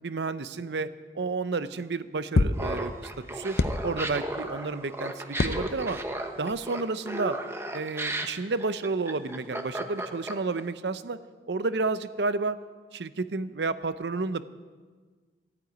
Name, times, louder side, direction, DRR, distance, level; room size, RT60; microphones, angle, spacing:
voice 1, 0.0-2.9 3.3-3.6 3.8-6.0 6.4-7.4 7.7-11.2 11.5-12.6 12.9-14.4, right 3 dB, 75° right, 13 dB, 0.7 m, -31 dB
sound 1, 2.4-2.6 3.6-4.1 5.4-6.0 6.5-6.6, left 2 dB, 60° left, 0.6 m, -26 dB
Laughter, 2.5-10.6, right 1 dB, 15° right, 0.9 m, -34 dB
14.0 x 9.0 x 9.3 m, 1.4 s
head